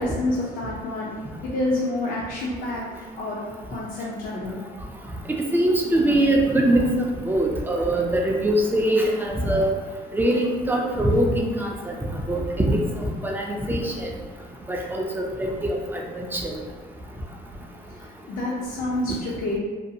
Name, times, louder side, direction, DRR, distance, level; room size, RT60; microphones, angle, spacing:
voice 1, 0.0-2.9 3.1-3.4 3.7-4.6 18.0-19.6, left 1 dB, 60° left, -5 dB, 0.5 m, -28 dB
voice 2, 5.3-6.9 7.3-9.8 10.1-11.9 12.3-14.1 14.7-16.5, right 1 dB, 10° right, 0 dB, 0.3 m, -23 dB
2.6 x 2.3 x 2.7 m, 1.4 s
cardioid pair, 110°, 17 cm